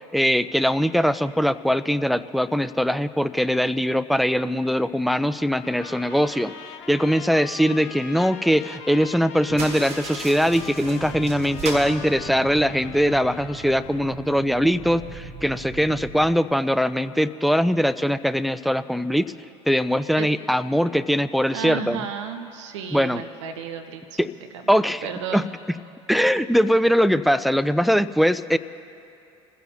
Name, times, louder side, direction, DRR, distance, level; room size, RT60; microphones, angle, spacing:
voice 1, 0.0-6.5 6.9-19.3 19.7-22.0 22.9-23.2 24.2-24.3 24.7-25.1 25.3-25.4 26.1-28.6, equal, ahead, 13 dB, 0.5 m, -21 dB
Trumpet, 5.3-14.2, left 8 dB, 75° left, 1.0 m, -42 dB
sound 1, 5.6-8.8 9.5-16.3, right 5 dB, 60° right, 1.3 m, -41 dB
sound 2, 9.5-12.9, right 3 dB, 45° right, 2.2 m, -36 dB
voice 2, 21.5-24.2 24.5-24.7 25.0-25.5, right 7 dB, 75° right, 5 dB, 1.1 m, -33 dB
26.0 x 16.0 x 2.8 m, 2.7 s
hypercardioid pair, 60°, 15 cm